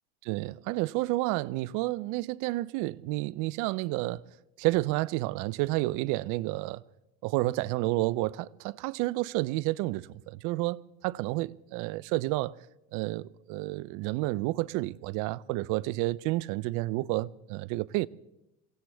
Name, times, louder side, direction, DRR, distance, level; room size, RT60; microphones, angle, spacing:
voice 1, 0.2-4.2 4.6-6.8 7.2-12.6 12.9-18.1, right 19 dB, 60° right, 0.5 m, -30 dB
24.5 x 16.5 x 3.4 m
supercardioid pair, 95°, 35 cm